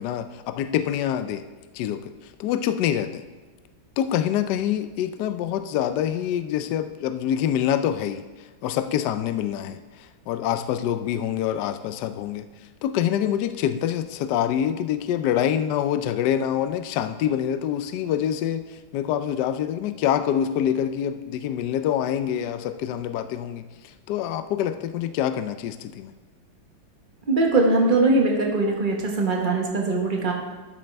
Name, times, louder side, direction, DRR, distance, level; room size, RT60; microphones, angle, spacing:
voice 1, 0.0-1.4 1.7-2.1 2.4-3.2 4.0-8.2 8.6-12.5 12.8-26.1, left 10 dB, 75° left, 11 dB, 1.0 m, -26 dB
voice 2, 27.3-30.3, right 2 dB, 30° right, 0 dB, 1.2 m, -21 dB
12.5 x 7.3 x 3.4 m, 1.3 s
omnidirectional pair, 2.2 m